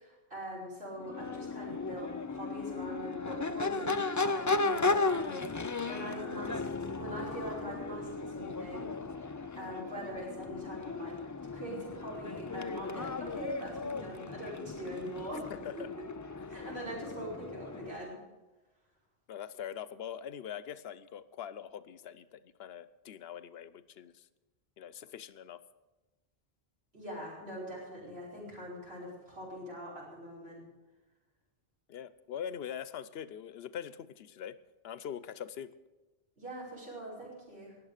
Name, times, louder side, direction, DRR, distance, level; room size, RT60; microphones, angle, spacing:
voice 1, 0.0-15.8 16.5-18.2 26.9-30.6 36.4-37.7, equal, 80° right, -4 dB, 5.5 m, -43 dB
Crowd / Race car auto racing / Accelerating revving vroom, 1.0-18.1, left 3 dB, 30° left, 0.3 m, -36 dB
voice 2, 15.5-15.9 19.3-24.3 24.8-25.6 31.9-34.6 34.8-35.7, left 9 dB, 75° left, 15 dB, 0.9 m, -43 dB
19.5 x 7.5 x 6.6 m, 1.1 s
omnidirectional pair, 1.0 m